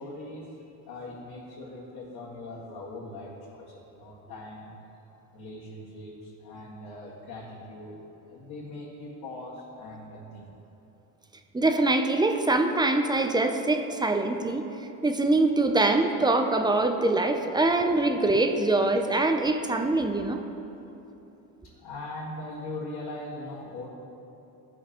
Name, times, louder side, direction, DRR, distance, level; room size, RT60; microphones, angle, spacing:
voice 1, 0.0-4.7 5.3-8.0 8.3-10.5 21.6-23.9, left 2 dB, 60° left, -8 dB, 1.9 m, -40 dB
voice 2, 11.5-14.7 15.0-20.4, right 2 dB, 10° right, 5 dB, 0.5 m, -24 dB
14.0 x 5.1 x 3.0 m, 2.9 s
supercardioid pair, 90°, 43 cm